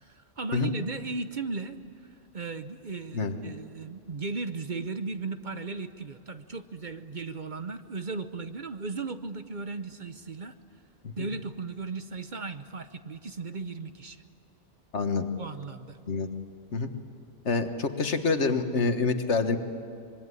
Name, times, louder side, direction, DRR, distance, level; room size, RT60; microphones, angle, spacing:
voice 1, 0.0-1.8 2.3-10.5 11.2-14.2 15.4-16.0, right 4 dB, 45° right, 9 dB, 0.9 m, -36 dB
voice 2, 14.9-15.3 16.1-16.3 16.7-16.9 17.5-19.6, left 4 dB, 70° left, 7 dB, 1.8 m, -26 dB
25.0 x 23.0 x 9.8 m, 2.5 s
omnidirectional pair, 1.2 m